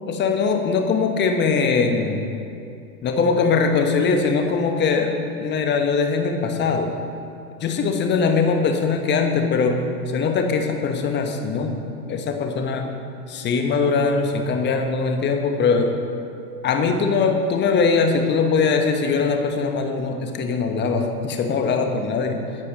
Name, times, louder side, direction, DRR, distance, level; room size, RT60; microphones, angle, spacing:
voice 1, 0.1-2.2 3.0-6.9 7.6-11.8 12.1-12.9 13.3-15.9 16.6-22.4, left 4 dB, 25° left, 4 dB, 1.2 m, -21 dB
20.5 x 10.5 x 3.2 m, 2.5 s
figure-of-eight pair, 95°, 46 cm